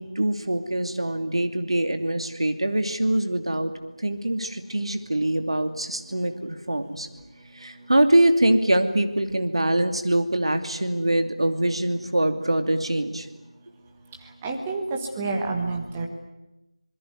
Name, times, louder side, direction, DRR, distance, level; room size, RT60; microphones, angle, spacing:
voice 1, 0.0-3.7 4.0-7.1 7.5-13.3, right 1 dB, 55° right, 8 dB, 2.7 m, -23 dB
voice 2, 14.2-16.1, right 3 dB, 10° right, 2 dB, 1.3 m, -29 dB
26.0 x 21.5 x 9.5 m, 0.98 s
figure-of-eight pair, 170°, 3 cm